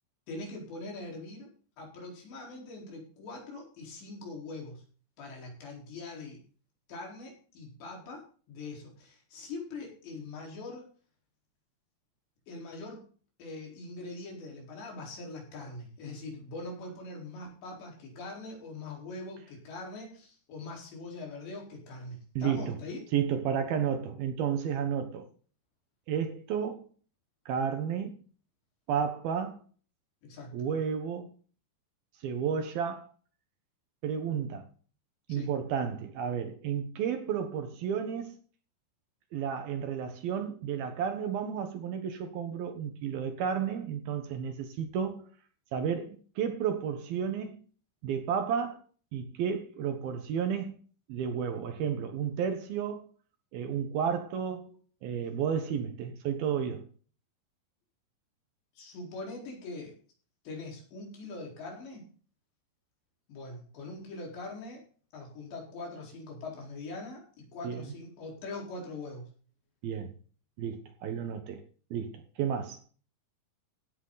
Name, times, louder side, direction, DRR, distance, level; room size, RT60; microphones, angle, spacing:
voice 1, 0.3-1.5 1.8-4.8 5.2-6.4 6.9-8.2 8.5-10.9 12.5-13.1 13.4-23.0 30.2-30.5 35.3-35.5 58.8-59.9 60.4-62.1 63.3-64.8 65.1-69.3, left 2 dB, 75° left, 6.5 m, -42 dB
voice 2, 22.4-22.8 23.1-25.3 26.1-26.9 27.5-28.1 28.9-29.6 30.5-31.3 32.2-33.1 34.0-34.7 35.3-38.3 39.3-45.3 45.7-47.6 48.0-48.8 49.1-50.8 51.1-53.1 53.5-56.8 67.6-67.8 69.8-70.1 70.6-71.6 71.9-72.8, right 7 dB, 70° right, 2.7 m, -32 dB
16.0 x 9.1 x 4.0 m
omnidirectional pair, 5.1 m